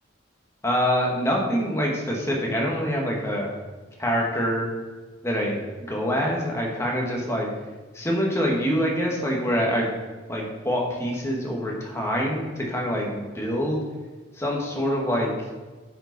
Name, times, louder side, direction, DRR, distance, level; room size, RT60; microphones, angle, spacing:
voice 1, 0.6-3.5 4.0-4.7 5.2-5.6 5.9-7.5 7.9-9.9 10.3-13.8 14.4-15.3, equal, 15° left, -2 dB, 1.4 m, -25 dB
8.9 x 5.1 x 4.0 m, 1.3 s
head